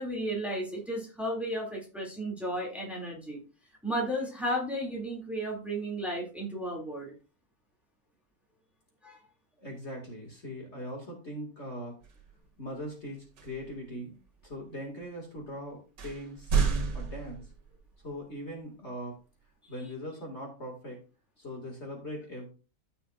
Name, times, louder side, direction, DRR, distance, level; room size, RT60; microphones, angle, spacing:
voice 1, 0.0-3.4 3.8-7.1 9.0-9.2, equal, ahead, -3 dB, 2.5 m, -34 dB
voice 2, 9.6-11.9 12.6-14.2 14.4-17.5 18.0-19.1 19.7-21.0 21.4-22.5, equal, 40° left, 0 dB, 2.5 m, -40 dB
sound 1, 12.0-12.3 13.4-13.8 14.4-14.5 15.4-15.5 16.0-17.9, right 6 dB, 90° right, 2.0 m, -30 dB
14.0 x 5.7 x 2.5 m, 0.34 s
omnidirectional pair, 1.8 m